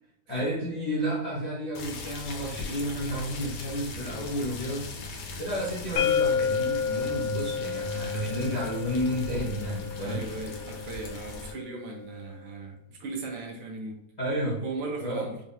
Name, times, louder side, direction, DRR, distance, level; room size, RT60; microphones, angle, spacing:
voice 1, 0.3-4.9 5.4-10.2 14.2-14.6 15.0-15.3, equal, 35° left, -6 dB, 0.6 m, -31 dB
sound 1, 1.7-11.5, left 3 dB, 85° left, 1.4 m, -39 dB
sound 2, 6.0-11.8, left 6 dB, 70° left, 1.2 m, -31 dB
voice 2, 10.0-14.0 14.6-15.4, right 3 dB, 85° right, 1 dB, 1.5 m, -37 dB
4.2 x 2.4 x 2.7 m, 0.82 s
omnidirectional pair, 2.1 m